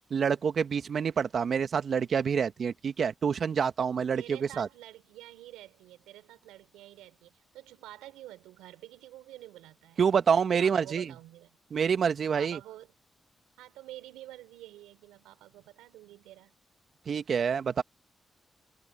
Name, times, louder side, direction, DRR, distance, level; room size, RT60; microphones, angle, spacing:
voice 1, 0.1-4.7 10.0-11.1 11.7-12.6 17.1-17.8, right 6 dB, 65° right, 1.7 m, -27 dB
voice 2, 4.2-10.0 10.6-11.6 12.3-12.9 13.6-16.5, right 15 dB, 90° right, 4.4 m, -49 dB
supercardioid pair, 40°, 0 cm